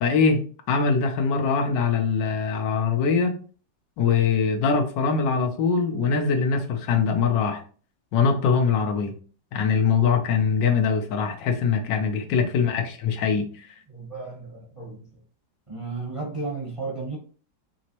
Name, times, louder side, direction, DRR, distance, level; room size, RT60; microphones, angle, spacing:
voice 1, 0.0-3.4 4.0-7.6 8.1-9.1 9.5-13.7, left 5 dB, 90° left, 1.5 m, -22 dB
voice 2, 12.1-12.5 13.9-15.2 15.7-17.2, right 3 dB, 25° right, 0.8 m, -34 dB
5.5 x 3.0 x 2.8 m
omnidirectional pair, 1.9 m